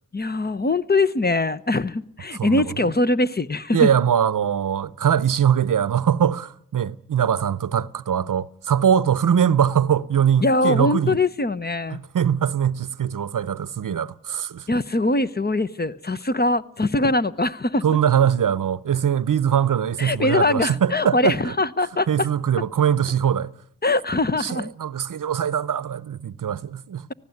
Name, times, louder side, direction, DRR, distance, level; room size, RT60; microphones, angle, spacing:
voice 1, 0.1-3.9 10.4-12.0 14.7-17.8 20.0-22.3 23.8-24.7, left 2 dB, 30° left, 0.8 m, -22 dB
voice 2, 3.7-11.2 11.9-14.7 17.8-21.5 22.1-23.5 24.4-27.1, right 8 dB, 70° right, 0.7 m, -22 dB
19.0 x 15.0 x 9.3 m
cardioid pair, 55°, 33 cm